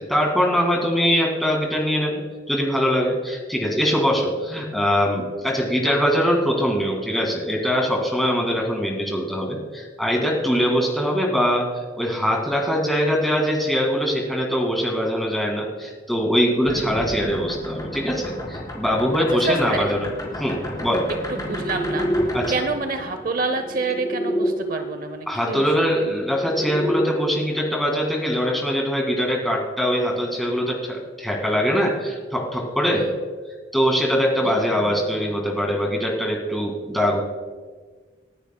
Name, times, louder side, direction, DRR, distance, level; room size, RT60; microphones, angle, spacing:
voice 1, 0.0-2.2 2.5-20.1 20.4-21.1 22.3-22.5 25.3-33.1 33.7-37.2, equal, ahead, -1 dB, 2.0 m, -22 dB
sound 1, 16.6-24.5 25.8-27.1, equal, 20° left, 3.5 m, -29 dB
voice 2, 16.7-17.1 19.3-19.9 21.3-22.1 22.5-25.9 32.9-33.2 34.4-35.3, right 3 dB, 50° right, 8 dB, 0.7 m, -28 dB
28.0 x 10.0 x 2.2 m, 1.4 s
head